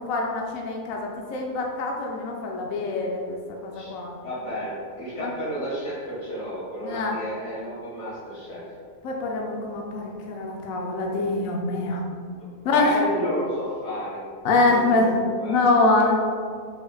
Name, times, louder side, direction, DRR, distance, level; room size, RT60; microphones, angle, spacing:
voice 1, 0.0-4.2 5.2-5.3 6.8-7.2 9.0-12.0 12.6-12.9 14.4-15.1 15.4-16.2, left 2 dB, 70° left, 0 dB, 0.9 m, -24 dB
voice 2, 3.7-8.8 12.7-14.3 14.6-15.1 15.4-15.6, equal, 85° left, -6 dB, 2.1 m, -31 dB
4.1 x 2.8 x 3.8 m, 2.1 s
omnidirectional pair, 1.7 m